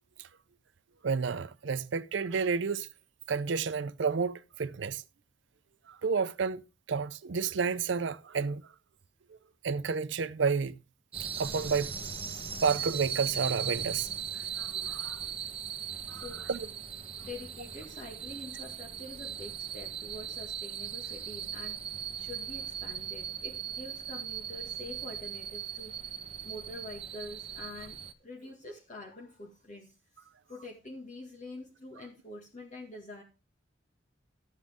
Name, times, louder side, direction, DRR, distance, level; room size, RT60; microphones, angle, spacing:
voice 1, 1.0-2.9 3.3-5.0 5.9-6.6 6.9-8.6 9.6-10.8 11.2-11.9 12.6-14.1 14.6-15.2 16.1-16.6, right 5 dB, 70° right, 0.5 m, -31 dB
sound 1, 11.1-28.1, right 8 dB, 30° right, 1.1 m, -38 dB
voice 2, 16.1-16.8 17.2-26.0 26.4-30.0 30.5-33.2, left 2 dB, 40° left, 1.9 m, -46 dB
13.5 x 7.4 x 3.6 m
head